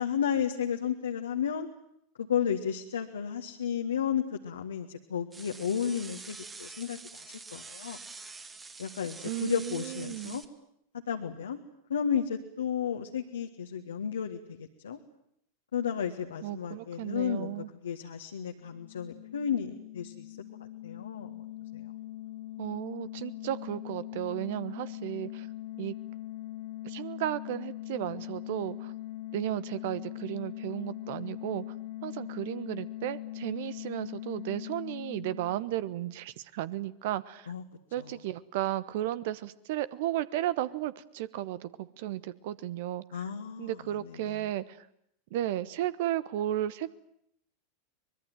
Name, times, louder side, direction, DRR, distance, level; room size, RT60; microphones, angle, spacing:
voice 1, 0.0-1.7 2.2-7.2 7.5-8.0 8.8-10.4 11.1-11.6 11.9-15.0 15.7-20.4 20.8-21.4 21.7-21.9 37.5-37.6 38.0-38.1 43.1-43.8 44.1-44.4, left 8 dB, 70° left, 3 dB, 1.7 m, -33 dB
sound 1, 5.3-10.4, right 4 dB, 20° right, 2.1 m, -46 dB
voice 2, 9.2-10.4 16.4-17.7 22.6-25.5 25.8-26.0 26.8-28.9 29.3-31.6 32.0-37.5 37.9-43.2 43.6-44.9 45.3-46.9, right 13 dB, 55° right, 17 dB, 1.1 m, -34 dB
sound 2, 18.6-36.1, left 15 dB, 55° left, 1.6 m, -41 dB
24.0 x 21.5 x 9.1 m, 0.73 s
figure-of-eight pair, 85°, 0 cm